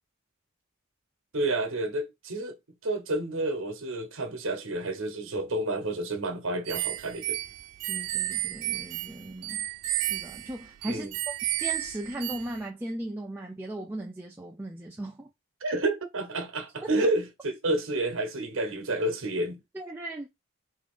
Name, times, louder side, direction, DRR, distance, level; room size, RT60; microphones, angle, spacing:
voice 1, 1.3-2.6 2.8-7.4 10.9-11.1 15.6-19.6, right 2 dB, 60° right, 0.8 m, -30 dB
sound 1, 6.7-12.6, right 15 dB, 85° right, 0.4 m, -32 dB
voice 2, 7.9-9.7 9.9-15.3 17.0-17.1 19.7-20.3, right 1 dB, 10° right, 0.3 m, -37 dB
3.5 x 2.5 x 3.5 m
head